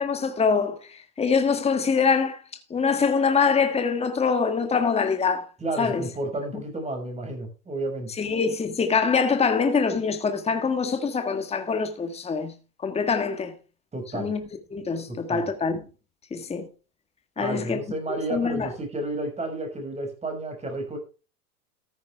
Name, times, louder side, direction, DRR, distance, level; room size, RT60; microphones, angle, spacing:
voice 1, 0.0-2.4 2.7-5.4 5.8-6.1 8.2-12.5 12.8-13.5 14.1-14.4 14.7-15.8 16.3-16.7 17.4-17.8 18.1-18.7, left 5 dB, 15° left, 1.6 m, -24 dB
voice 2, 5.6-8.1 13.9-14.3 15.1-15.5 17.4-21.0, right 2 dB, 15° right, 5.7 m, -31 dB
14.0 x 9.5 x 3.4 m
hypercardioid pair, 110°, 45 cm